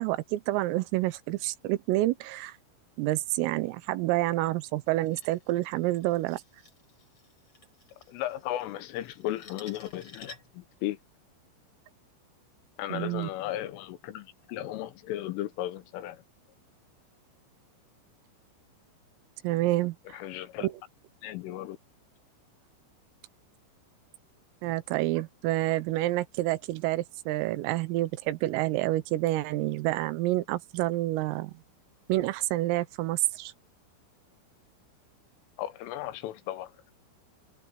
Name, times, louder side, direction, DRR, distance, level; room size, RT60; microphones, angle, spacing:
voice 1, 0.0-2.6 3.0-6.4 12.9-13.3 19.4-20.2 20.6-20.7 24.6-31.5 32.1-33.5, right 17 dB, 85° right, 3.6 m, -28 dB
sound 1, 4.9-10.7, left 3 dB, 30° left, 5.1 m, -53 dB
voice 2, 8.1-11.0 12.8-16.2 20.1-20.7 21.2-21.8 35.6-36.9, left 13 dB, 80° left, 3.6 m, -35 dB
omnidirectional pair, 5.9 m